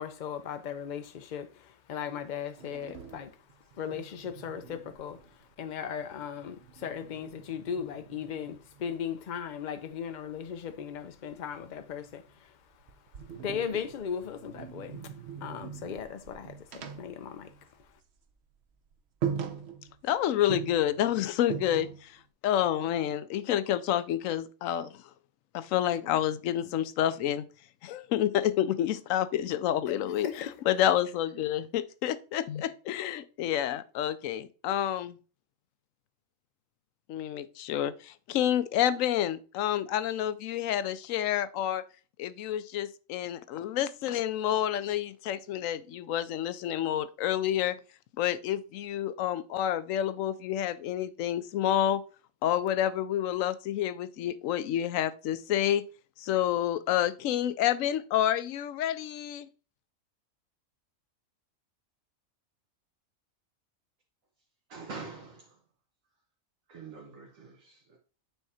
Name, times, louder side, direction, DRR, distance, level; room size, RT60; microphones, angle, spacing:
voice 1, 0.0-3.3 3.8-5.2 5.6-12.5 13.4-15.1 15.4-17.5 30.2-30.6, left 8 dB, 60° left, 0.5 m, -37 dB
sound 1, 2.6-5.7 6.0-9.0 10.3-12.3 12.7-18.1 18.3-18.5 18.9-19.0 19.2-20.1 20.5-22.2, right 7 dB, 55° right, 1.0 m, -41 dB
voice 2, 20.0-22.1 22.4-25.0 25.5-27.5 27.8-35.2 37.1-41.8 42.2-47.8 48.2-52.0 52.4-55.9 56.2-59.5, left 11 dB, 80° left, 1.0 m, -29 dB
voice 3, 64.7-65.6 66.7-68.0, right 4 dB, 80° right, 1.7 m, -45 dB
9.2 x 3.6 x 4.2 m
omnidirectional pair, 1.4 m